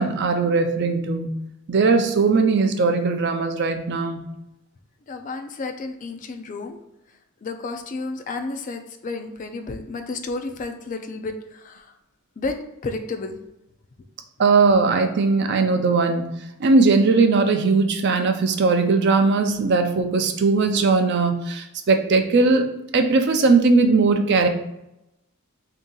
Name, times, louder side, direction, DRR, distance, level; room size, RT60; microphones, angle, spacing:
voice 1, 0.0-1.4 1.7-4.3 14.4-22.7 22.9-24.5, right 4 dB, 50° right, 6 dB, 0.4 m, -19 dB
voice 2, 5.1-6.8 7.4-11.9 12.4-12.6 12.8-13.4, left 3 dB, 35° left, 6 dB, 0.3 m, -31 dB
3.5 x 2.8 x 3.8 m, 0.86 s
head